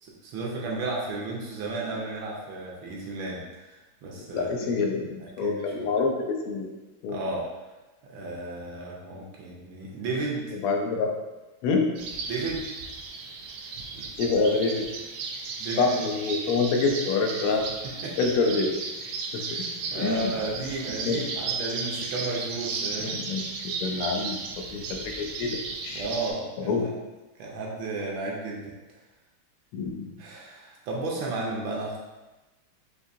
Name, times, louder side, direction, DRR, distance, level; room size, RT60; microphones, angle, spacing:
voice 1, 0.0-3.7 4.0-4.5 5.2-5.9 7.1-7.5 8.0-10.5 12.3-12.7 13.9-14.1 15.6-16.1 17.8-18.2 19.4-19.7 19.9-23.3 25.9-26.9 27.4-28.7 30.2-32.0, right 2 dB, 70° right, -3 dB, 1.3 m, -33 dB
voice 2, 4.3-6.7 7.0-7.2 10.6-11.2 11.6-11.9 14.2-14.9 15.8-17.6 18.2-18.7 19.3-19.4 19.9-20.3 21.0-21.2 23.0-26.0 26.6-26.9 29.7-30.1, left 4 dB, 85° left, 2 dB, 1.5 m, -26 dB
sound 1, 12.0-26.3, right 4 dB, 90° right, 0.9 m, -35 dB
5.2 x 2.6 x 2.6 m, 1.1 s
omnidirectional pair, 2.4 m